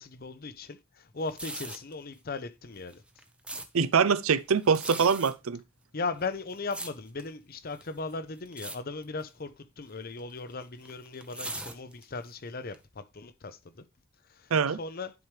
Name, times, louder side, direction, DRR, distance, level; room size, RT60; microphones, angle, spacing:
voice 1, 0.0-3.0 5.9-13.7 14.8-15.1, left 3 dB, 45° left, 0.7 m, -37 dB
sound 1, 1.2-1.9 2.8-3.7 4.6-5.3 6.1-7.3 7.8-8.1 8.5-8.8 9.0-9.3 10.2-12.3 12.7-12.8, right 2 dB, 5° right, 0.7 m, -40 dB
voice 2, 3.7-5.6 14.5-14.8, right 6 dB, 90° right, 0.6 m, -24 dB
10.5 x 4.7 x 3.2 m
head